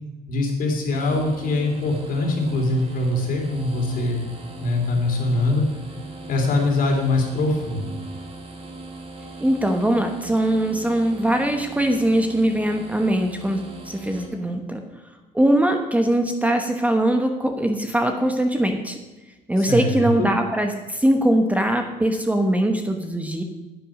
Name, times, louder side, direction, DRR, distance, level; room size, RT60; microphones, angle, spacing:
voice 1, 0.3-4.3 4.6-5.6 6.3-8.0 19.6-20.3, left 2 dB, 60° left, 1 dB, 3.4 m, -23 dB
sound 1, 0.9-14.3, right 2 dB, 35° right, 2.5 m, -39 dB
voice 2, 9.4-14.8 15.3-19.0 19.5-23.4, right 1 dB, 10° right, 5 dB, 1.1 m, -21 dB
9.8 x 8.6 x 6.4 m, 1.2 s
cardioid pair, 110°, 17 cm